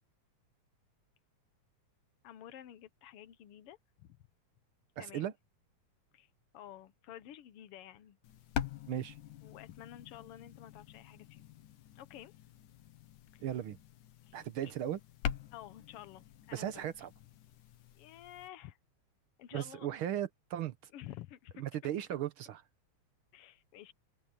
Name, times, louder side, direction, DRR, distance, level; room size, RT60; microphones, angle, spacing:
voice 1, 2.2-4.2 5.0-5.3 6.1-8.2 9.4-11.4 11.9-12.3 13.3-13.4 14.2-14.4 15.5-16.8 17.9-18.8 19.4-19.9 20.9-21.6 23.3-23.9, left 12 dB, 65° left, 1.6 m, -51 dB
voice 2, 5.0-5.3 8.9-9.2 13.4-13.8 14.3-15.0 16.5-17.1 19.5-20.9 21.6-22.6, right 11 dB, 65° right, 1.4 m, -37 dB
sound 1, 8.2-18.5, left 9 dB, 90° left, 2.8 m, -45 dB
open air
omnidirectional pair, 3.5 m